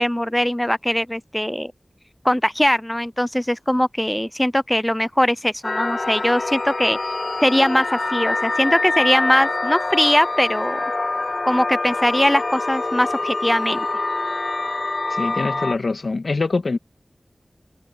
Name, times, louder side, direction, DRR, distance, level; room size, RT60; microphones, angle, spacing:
voice 1, 0.0-1.7 2.2-7.0 7.4-10.8 11.4-13.9, left 1 dB, 15° left, 0.6 m, -20 dB
sound 1, 5.6-15.8, left 2 dB, 60° left, 0.6 m, -25 dB
voice 2, 15.1-16.8, left 3 dB, 80° left, 2.0 m, -24 dB
wide cardioid pair, 50°, 0 cm